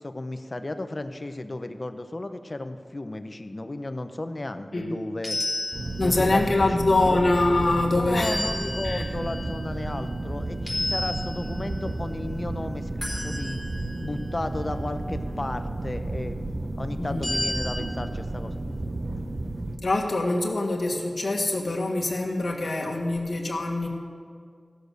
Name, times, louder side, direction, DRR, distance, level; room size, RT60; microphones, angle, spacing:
voice 1, 0.0-5.4 6.0-7.2 8.0-13.6 14.0-18.5, left 2 dB, 40° left, 8 dB, 0.8 m, -34 dB
sound 1, 5.2-6.4 8.2-10.3 10.7-11.9 13.0-14.1 17.2-17.8, left 1 dB, 5° right, 4.0 m, -32 dB
sound 2, 5.7-19.8, right 2 dB, 45° right, 1.1 m, -32 dB
voice 2, 6.0-8.4 8.8-9.0 17.0-17.3 19.8-23.9, left 2 dB, 65° left, 0 dB, 1.7 m, -24 dB
16.0 x 6.7 x 6.5 m, 2.1 s
wide cardioid pair, 60°, 0 cm